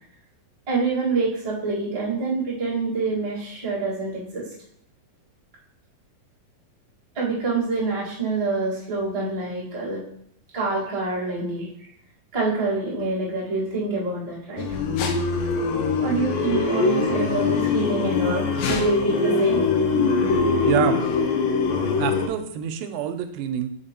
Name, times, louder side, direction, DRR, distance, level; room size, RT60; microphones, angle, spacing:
voice 1, 0.7-4.5 7.1-10.0 10.5-11.7 12.3-14.7 16.0-19.9, right 3 dB, 25° right, -7 dB, 0.8 m, -26 dB
sound 1, 14.6-22.3, left 4 dB, 80° left, 2.4 m, -22 dB
voice 2, 20.6-21.0 22.0-23.8, right 9 dB, 85° right, 9 dB, 2.3 m, -26 dB
5.2 x 4.8 x 4.3 m, 0.70 s
omnidirectional pair, 4.0 m